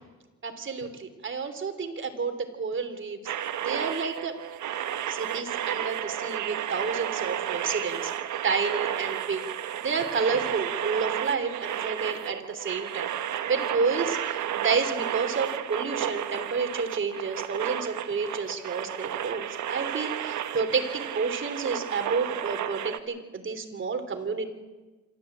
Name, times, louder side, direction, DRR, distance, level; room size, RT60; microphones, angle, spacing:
voice 1, 0.4-3.2 3.6-4.3 5.1-8.1 8.4-9.4 9.8-13.1 13.5-24.5, right 5 dB, 40° right, 7 dB, 3.4 m, -30 dB
sound 1, 3.2-23.0, right 10 dB, 75° right, 1.5 m, -32 dB
26.0 x 13.5 x 8.7 m, 1.2 s
cardioid pair, 90°, 30 cm